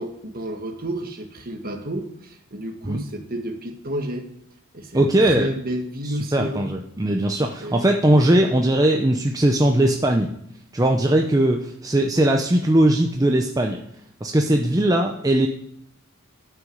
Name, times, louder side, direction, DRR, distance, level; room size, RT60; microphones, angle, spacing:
voice 1, 0.0-4.3 4.7-6.7 7.6-7.9, right 1 dB, 45° right, 4 dB, 1.7 m, -31 dB
voice 2, 4.9-5.5 6.3-10.3 10.7-13.8 14.2-15.5, right 1 dB, 15° right, 3 dB, 0.7 m, -19 dB
11.0 x 6.1 x 7.8 m, 0.71 s
head